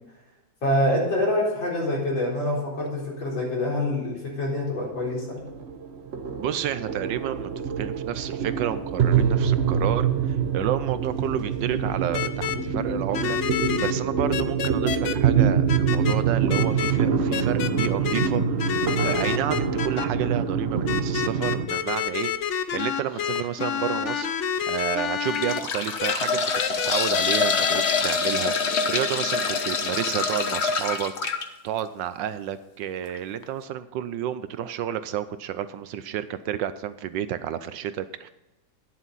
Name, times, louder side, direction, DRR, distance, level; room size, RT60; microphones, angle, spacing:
voice 1, 0.6-5.4, left 1 dB, 70° left, -4 dB, 4.7 m, -26 dB
sound 1, 4.8-21.7, right 7 dB, 55° right, 0.7 m, -25 dB
voice 2, 6.4-13.4 13.8-24.3 24.7-28.5 28.9-31.1 31.4-38.3, right 10 dB, 75° right, 13 dB, 1.2 m, -30 dB
sound 2, 12.1-12.6 13.1-13.9 14.3-15.1 15.7-16.2 16.5-16.9 17.3-18.3 18.6-20.1 20.9-25.6 26.0-26.1 26.5-28.0, left 8 dB, 90° left, 0.6 m, -28 dB
sound 3, 23.1-23.4 24.0-24.1 25.0-31.4 33.0-33.2 33.4-33.5, left 5 dB, 50° left, 0.9 m, -26 dB
11.5 x 10.0 x 4.0 m, 1.0 s
omnidirectional pair, 2.1 m